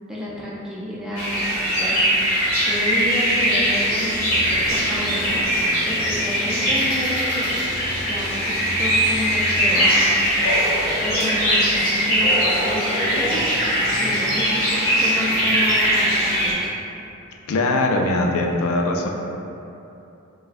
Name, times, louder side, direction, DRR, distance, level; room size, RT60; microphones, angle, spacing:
voice 1, 0.1-2.3 2.6-5.5 5.8-7.8 8.1-10.3 11.0-16.7, left 1 dB, 5° right, -7 dB, 0.4 m, -30 dB
sound 1, 1.2-16.5, equal, 70° left, 1.1 m, -21 dB
voice 2, 17.5-19.1, left 2 dB, 85° left, 1 dB, 0.4 m, -21 dB
4.2 x 2.2 x 2.5 m, 2.8 s
head